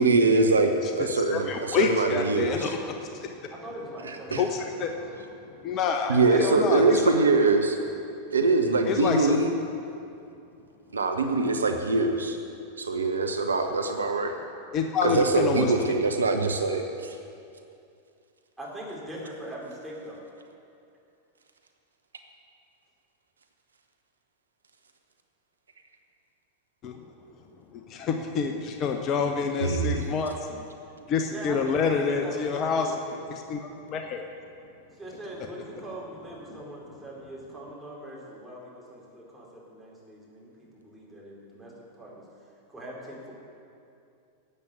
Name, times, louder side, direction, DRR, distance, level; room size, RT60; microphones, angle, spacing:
voice 1, 0.0-2.7 4.0-4.4 6.1-7.8 8.3-9.5 10.9-12.4 12.8-14.3 15.0-17.2 29.6-30.0, right 3 dB, 75° right, 5 dB, 0.9 m, -23 dB
voice 2, 1.3-3.3 4.3-4.9 5.6-7.0 8.8-9.4 14.7-15.7 26.8-27.0 27.7-30.7 31.1-32.9 33.3-34.2 36.5-36.6, left 5 dB, 35° left, 4 dB, 1.0 m, -28 dB
voice 3, 3.5-5.1 6.1-7.5 18.6-20.2 31.3-33.2 34.9-42.3 42.7-43.3, right 1 dB, 5° right, -5 dB, 4.1 m, -41 dB
12.0 x 8.7 x 8.3 m, 2.5 s
figure-of-eight pair, 90°, 0 cm